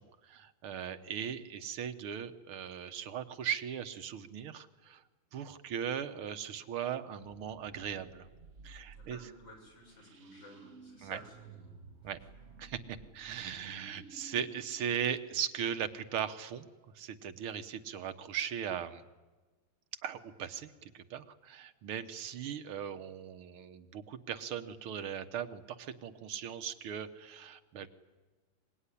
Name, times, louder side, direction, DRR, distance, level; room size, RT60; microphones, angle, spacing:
voice 1, 0.0-5.0 5.3-8.3 8.6-9.2 11.0-11.2 12.0-12.2 12.6-16.7 17.0-19.0 20.0-27.9, right 8 dB, 80° right, 9 dB, 2.0 m, -38 dB
sound 1, 7.2-15.8, right 4 dB, 40° right, 1.1 m, -55 dB
voice 2, 8.9-12.1, left 1 dB, 60° left, 0 dB, 7.8 m, -54 dB
24.0 x 21.5 x 9.9 m, 1.3 s
omnidirectional pair, 2.3 m